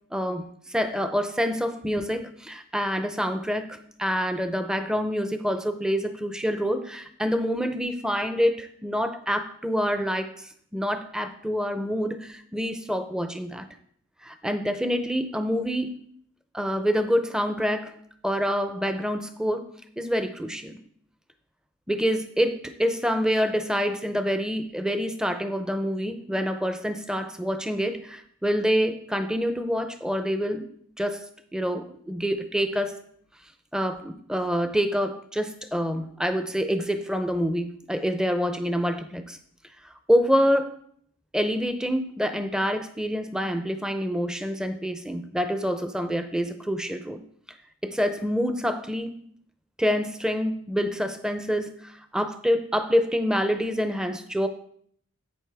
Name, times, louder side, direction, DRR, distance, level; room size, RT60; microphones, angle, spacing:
voice 1, 0.1-13.7 14.2-15.9 16.5-17.9 18.2-19.7 20.0-20.8 21.9-30.7 31.0-31.2 31.5-33.0 33.7-39.4 39.8-40.8 41.3-47.2 47.8-49.2 49.8-54.5, equal, 5° right, 9 dB, 0.5 m, -27 dB
11.0 x 8.2 x 3.4 m, 0.64 s
head